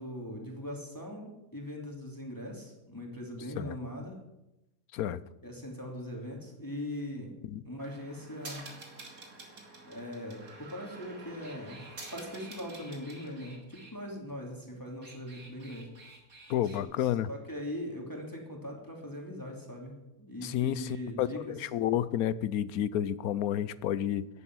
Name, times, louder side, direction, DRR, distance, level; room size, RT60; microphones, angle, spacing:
voice 1, 0.0-4.2 5.4-7.3 7.6-8.7 9.9-11.8 12.1-15.9 16.8-21.6 21.9-22.0, left 1 dB, 15° left, -1 dB, 3.0 m, -41 dB
sound 1, 7.8-13.9 14.8-16.8, right 3 dB, 75° right, 3.0 m, -48 dB
voice 2, 16.5-17.3 20.4-24.3, left 11 dB, 85° left, 18 dB, 1.1 m, -30 dB
16.0 x 11.0 x 6.2 m, 0.93 s
omnidirectional pair, 1.5 m